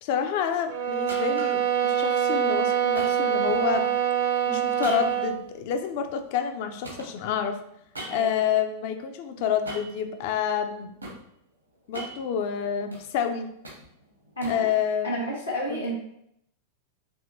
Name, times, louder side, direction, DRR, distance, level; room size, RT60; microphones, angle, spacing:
voice 1, 0.0-3.9 4.5-7.6 8.1-10.9 11.9-13.5 14.5-15.3 15.7-15.9, left 8 dB, 50° left, 8 dB, 0.4 m, -28 dB
sound 1, 0.7-5.4, right 9 dB, 50° right, 0.5 m, -25 dB
sound 2, 1.1-1.7 2.9-3.9 4.8-6.6 6.8-8.5 9.6-10.0 10.6-11.2 11.7-13.1 13.4-14.7, right 2 dB, 85° right, 1.1 m, -41 dB
voice 2, 8.1-8.4 14.4-14.7 15.0-15.9, right 1 dB, 80° left, -5 dB, 1.0 m, -31 dB
4.8 x 2.8 x 2.5 m, 0.74 s
figure-of-eight pair, 90°, 0 cm